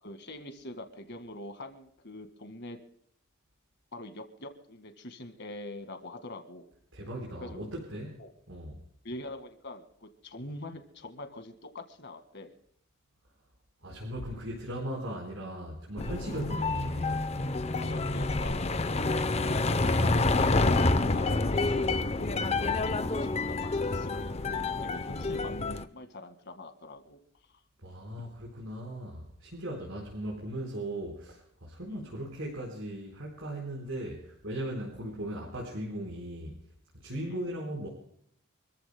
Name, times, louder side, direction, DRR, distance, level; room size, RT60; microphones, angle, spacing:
voice 1, 0.0-2.8 3.9-6.7 7.4-7.7 8.2-8.3 9.0-12.6 17.8-18.8 19.5-27.2 31.9-32.1 37.2-37.5, left 1 dB, 55° left, 7 dB, 1.9 m, -43 dB
voice 2, 6.9-8.2 8.5-8.8 13.8-17.2 27.8-36.6 36.9-37.9, right 1 dB, 65° right, -3 dB, 4.4 m, -38 dB
sound 1, 16.0-25.8, left 3 dB, 30° left, 0.6 m, -28 dB
28.0 x 14.5 x 2.2 m, 0.68 s
head